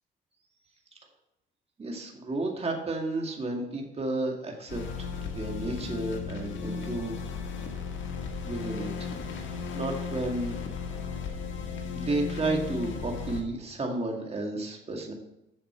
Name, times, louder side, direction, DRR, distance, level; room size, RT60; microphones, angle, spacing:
voice 1, 1.8-7.1 8.5-9.1 9.4-10.5 11.9-15.1, right 2 dB, 30° right, 1 dB, 2.1 m, -32 dB
sound 1, 4.7-13.4, left 5 dB, 75° left, 1.6 m, -35 dB
7.8 x 7.2 x 4.4 m, 0.86 s
cardioid pair, 90°, 20 cm